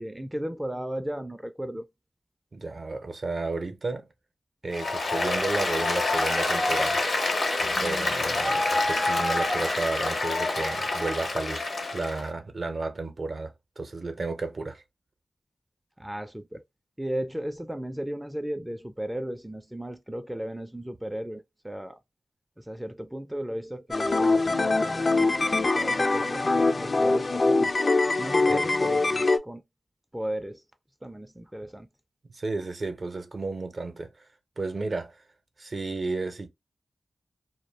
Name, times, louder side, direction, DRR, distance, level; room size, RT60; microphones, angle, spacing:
voice 1, 0.0-1.9 16.0-16.6 17.0-22.0 22.6-27.7 28.2-29.6 30.1-30.6 31.0-31.9, right 1 dB, 10° right, 0.4 m, -35 dB
voice 2, 2.5-4.1 4.6-7.0 7.8-11.7 11.9-14.8 28.5-28.7 32.3-34.3 34.6-35.2 35.6-36.5, right 3 dB, 60° right, 0.6 m, -33 dB
Applause, 4.7-12.2, left 2 dB, 80° left, 0.9 m, -27 dB
sound 1, 23.9-29.4, left 3 dB, 60° left, 0.4 m, -23 dB
2.2 x 2.1 x 3.2 m
cardioid pair, 40°, 0 cm